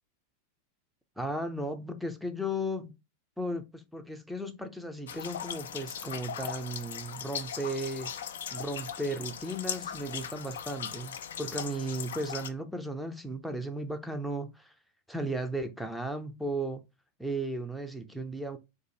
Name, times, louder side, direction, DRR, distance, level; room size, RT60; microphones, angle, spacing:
voice 1, 1.2-3.0 3.4-8.1 8.5-14.7 15.1-16.8 17.2-18.6, right 1 dB, ahead, 0.6 m, -35 dB
sound 1, 5.1-12.5, left 8 dB, 60° left, 0.5 m, -39 dB
3.9 x 2.4 x 4.6 m
figure-of-eight pair, 90°, 0 cm